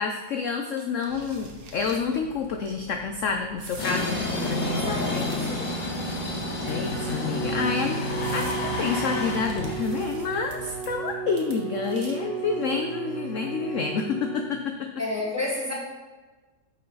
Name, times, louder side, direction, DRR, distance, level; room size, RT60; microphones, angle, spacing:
voice 1, 0.0-4.8 6.6-14.7, left 5 dB, 65° left, 4 dB, 0.7 m, -28 dB
sound 1, 0.8-2.0 2.4-2.7 3.6-4.0 4.6-5.8 6.6-7.2 7.7-7.8 8.2-8.6 9.5-10.6 10.8-11.1 11.4-12.3, right 4 dB, 60° right, 1.6 m, -47 dB
sound 2, 1.1-10.9, left 2 dB, 90° left, 2.1 m, -31 dB
voice 2, 4.7-5.8 15.0-15.7, left 2 dB, 10° right, -4 dB, 1.7 m, -31 dB
Bowed string instrument, 6.4-14.7, right 7 dB, 25° left, 1.7 m, -34 dB
9.1 x 6.3 x 3.9 m, 1.2 s
omnidirectional pair, 1.9 m